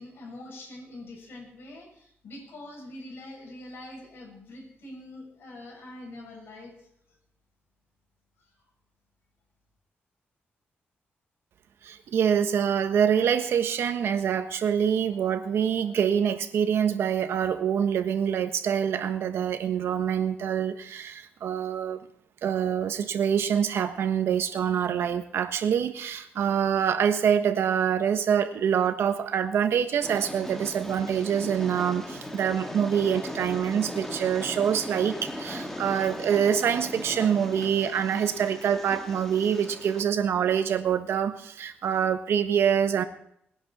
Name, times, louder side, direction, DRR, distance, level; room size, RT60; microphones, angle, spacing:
voice 1, 0.0-6.7, left 1 dB, 70° left, -1 dB, 7.0 m, -44 dB
voice 2, 11.8-22.0 22.4-43.0, right 8 dB, 80° right, 8 dB, 1.3 m, -25 dB
Train, 30.0-40.0, left 1 dB, 10° left, 1.6 m, -38 dB
20.5 x 10.5 x 4.3 m, 0.72 s
wide cardioid pair, 145°, 4 cm